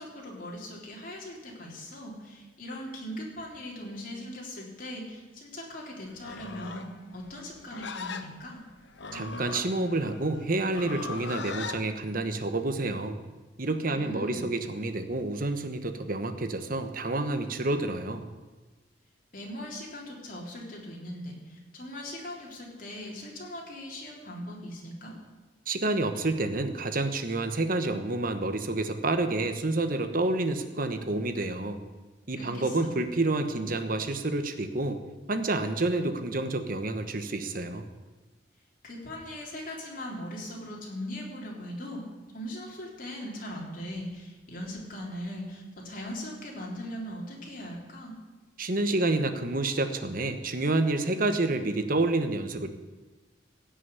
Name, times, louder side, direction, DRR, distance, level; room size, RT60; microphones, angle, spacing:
voice 1, 0.0-8.6 13.9-14.5 19.3-25.1 32.4-32.9 38.8-42.0 42.3-48.1, left 1 dB, 50° left, -2 dB, 3.7 m, -40 dB
Livestock farm animals working animals, 6.1-11.8, left 4 dB, 70° left, 1.0 m, -39 dB
voice 2, 9.1-13.2 13.6-18.2 25.7-31.8 32.3-35.0 35.3-37.9 48.6-52.7, right 2 dB, 50° right, 8 dB, 1.2 m, -29 dB
16.5 x 6.3 x 9.7 m, 1.2 s
head